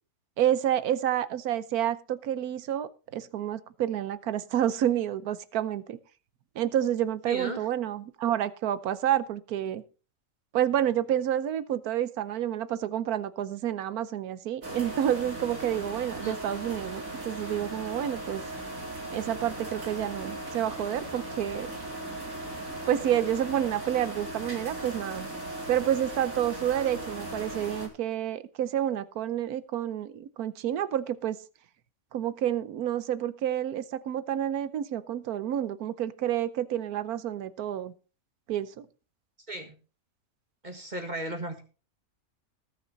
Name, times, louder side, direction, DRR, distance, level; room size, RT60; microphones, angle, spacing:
voice 1, 0.4-6.0 6.6-9.8 10.5-18.4 19.1-21.7 22.8-25.3 25.7-31.4 32.1-37.9 38.5-38.9, right 11 dB, 90° right, 15 dB, 1.3 m, -29 dB
voice 2, 7.3-7.7 16.2-16.4 39.5-39.7 40.6-41.6, right 2 dB, 30° right, 6 dB, 1.7 m, -35 dB
sound 1, 14.6-27.9, right 1 dB, 65° right, 3.9 m, -38 dB
19.5 x 6.6 x 4.0 m, 0.35 s
omnidirectional pair, 1.5 m